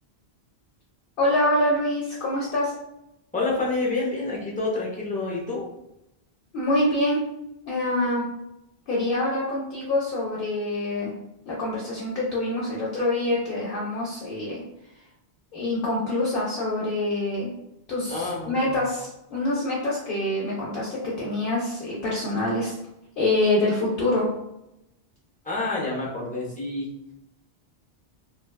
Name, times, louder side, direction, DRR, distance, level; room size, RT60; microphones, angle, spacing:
voice 1, 1.2-2.7 6.5-7.2 7.7-8.2 8.9-11.1 11.5-14.6 15.5-17.5 17.9-22.8 23.2-24.3, left 1 dB, 65° left, -5 dB, 0.7 m, -25 dB
voice 2, 3.3-5.7 18.1-18.8 25.4-26.9, left 3 dB, 10° left, -5 dB, 0.6 m, -28 dB
2.9 x 2.2 x 2.2 m, 0.87 s
omnidirectional pair, 1.1 m